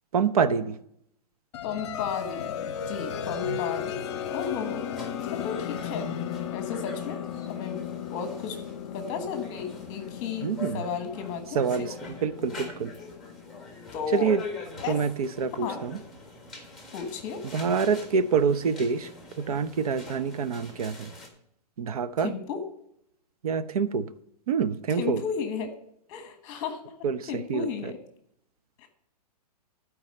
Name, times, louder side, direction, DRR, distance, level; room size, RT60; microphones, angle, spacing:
voice 1, 0.1-0.8 3.5-3.6 10.4-10.8 11.5-11.9 12.2-12.9 14.1-14.4 14.9-16.0 17.5-19.1 19.4-21.1 21.8-22.3 23.4-24.1 24.5-25.2 27.0-27.9, right 6 dB, 60° right, 12 dB, 0.7 m, -26 dB
sound 1, 1.5-14.0, left 9 dB, 40° left, 0.8 m, -36 dB
voice 2, 1.6-4.8 5.3-6.1 6.5-7.2 7.5-7.8 8.1-8.6 8.9-11.9 13.0-13.1 13.9-14.3 14.8-15.0 15.6-15.8 16.9-17.4 22.2-22.6 24.9-25.7 26.1-26.8 27.3-28.0 28.8-28.9, left 6 dB, 25° left, 7 dB, 1.3 m, -34 dB
sound 2, 1.9-21.3, left 3 dB, ahead, 1.4 m, -45 dB
12.0 x 4.8 x 6.5 m, 0.73 s
hypercardioid pair, 165°, 21 cm